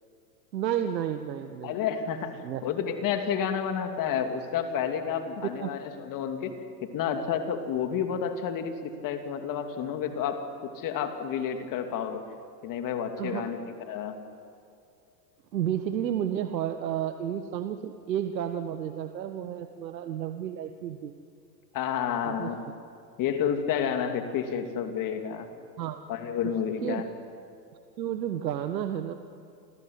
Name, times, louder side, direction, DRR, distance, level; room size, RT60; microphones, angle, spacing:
voice 1, 0.5-1.8 2.4-2.6 5.6-5.7 13.2-13.4 15.5-21.1 22.2-22.5 25.8-26.0 26.8-27.0 28.0-29.1, right 10 dB, 85° right, 8 dB, 1.6 m, -31 dB
voice 2, 1.6-12.2 12.6-14.2 21.7-22.6 23.2-25.5 26.1-27.1, left 8 dB, 40° left, 6 dB, 3.0 m, -30 dB
28.0 x 20.0 x 9.7 m, 2.5 s
hypercardioid pair, 110°, 50 cm